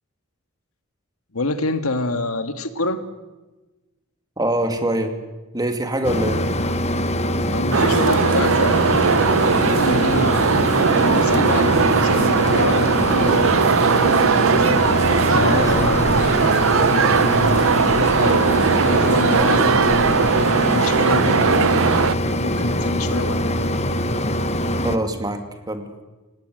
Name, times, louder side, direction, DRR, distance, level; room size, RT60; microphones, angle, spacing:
voice 1, 1.3-3.0 7.5-9.3 9.7-10.3 11.0-13.4 13.9-14.3 15.3-16.0 18.2-20.3 20.6-21.7 22.3-23.9, left 2 dB, 85° left, 9 dB, 1.8 m, -26 dB
voice 2, 4.4-5.2 5.5-6.4 15.4-17.4 24.8-26.0, right 1 dB, 20° right, 6 dB, 2.5 m, -25 dB
Mechanisms, 6.0-25.0, left 1 dB, 30° left, 1.1 m, -23 dB
sound 1, 7.7-22.1, right 5 dB, 65° right, 0.7 m, -19 dB
28.0 x 18.5 x 7.9 m, 1.1 s
head